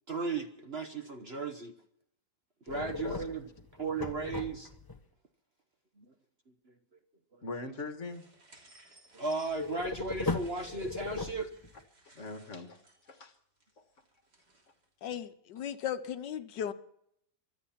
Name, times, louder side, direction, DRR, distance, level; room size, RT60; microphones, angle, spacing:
voice 1, 0.1-1.7 2.7-3.5 3.8-4.7 6.0-6.1 9.1-11.5, right 4 dB, 40° right, 6 dB, 1.1 m, -35 dB
voice 2, 2.7-3.3 7.4-8.2 12.0-13.3 13.8-13.9, left 3 dB, 45° left, 7 dB, 1.7 m, -42 dB
sound 1, 2.7-5.0 9.5-11.8, left 3 dB, 15° left, 0.8 m, -37 dB
sound 2, 8.0-14.9, right 2 dB, 60° right, 3.8 m, -60 dB
voice 3, 15.0-16.7, left 9 dB, 70° left, 11 dB, 1.4 m, -36 dB
24.0 x 8.9 x 5.8 m, 0.70 s
omnidirectional pair, 2.0 m